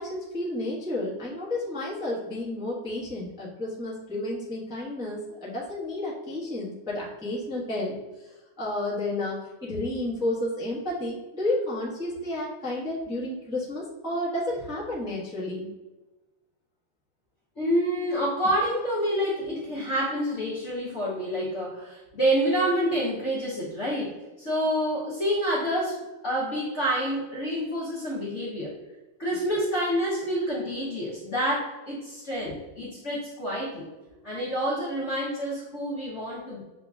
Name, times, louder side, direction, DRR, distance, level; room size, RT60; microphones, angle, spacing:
voice 1, 0.0-15.7 32.8-32.9, left 1 dB, 5° right, -8 dB, 0.8 m, -31 dB
voice 2, 17.6-24.1 24.4-26.0 26.2-28.7 29.2-33.8 34.2-36.6, equal, 45° left, -7 dB, 1.0 m, -28 dB
6.8 x 2.8 x 2.4 m, 1.1 s
omnidirectional pair, 2.3 m